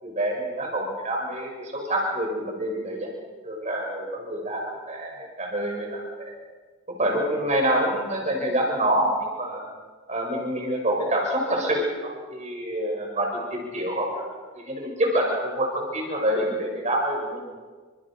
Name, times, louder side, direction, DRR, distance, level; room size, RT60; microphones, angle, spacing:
voice 1, 0.0-3.1 3.4-6.3 6.9-9.6 10.1-14.2 14.5-17.5, right 1 dB, 30° right, 1 dB, 6.6 m, -27 dB
29.0 x 25.5 x 5.9 m, 1.4 s
head